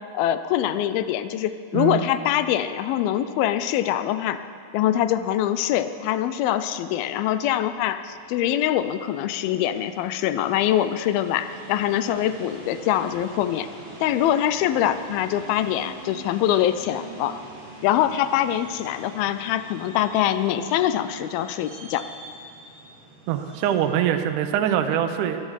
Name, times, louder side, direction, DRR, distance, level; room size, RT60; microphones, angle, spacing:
voice 1, 0.1-4.4 4.7-13.7 14.0-17.4 17.8-22.1, left 11 dB, 80° left, 12 dB, 2.3 m, -24 dB
voice 2, 1.7-2.0 23.3-25.4, right 10 dB, 75° right, 7 dB, 2.0 m, -23 dB
sound 1, 8.1-24.0, right 1 dB, 15° right, 2.0 m, -44 dB
22.5 x 8.4 x 7.4 m, 2.3 s
omnidirectional pair, 4.5 m